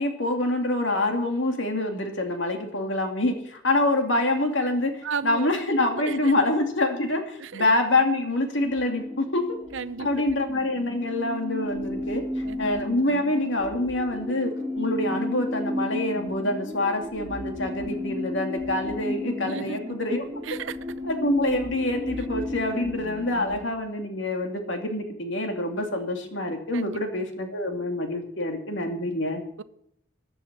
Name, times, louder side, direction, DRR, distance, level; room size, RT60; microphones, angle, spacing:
voice 1, 0.0-9.6 10.0-20.2 21.0-29.4, left 2 dB, 65° left, 2.4 m, -26 dB
voice 2, 5.0-5.5 6.0-6.3 7.4-7.7 9.7-10.1 12.4-12.6 19.4-19.8 20.4-20.8 26.7-27.0 29.6-29.7, right 5 dB, 70° right, 0.6 m, -33 dB
sound 1, 8.6-23.6, left 1 dB, 15° right, 1.6 m, -33 dB
15.0 x 9.7 x 6.0 m
head